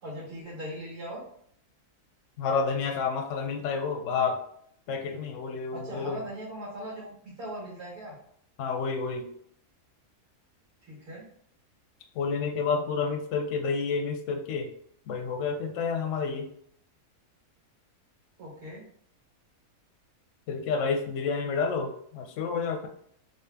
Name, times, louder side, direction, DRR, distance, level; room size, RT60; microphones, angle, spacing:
voice 1, 0.0-1.2 5.7-8.2 10.9-11.2 18.4-18.8, right 1 dB, 75° right, -6 dB, 1.7 m, -39 dB
voice 2, 2.4-4.4 4.9-6.2 8.6-9.3 12.1-14.7 15.1-16.5 20.5-22.9, left 5 dB, 65° left, 5 dB, 0.8 m, -29 dB
3.8 x 2.3 x 3.4 m, 0.66 s
omnidirectional pair, 1.7 m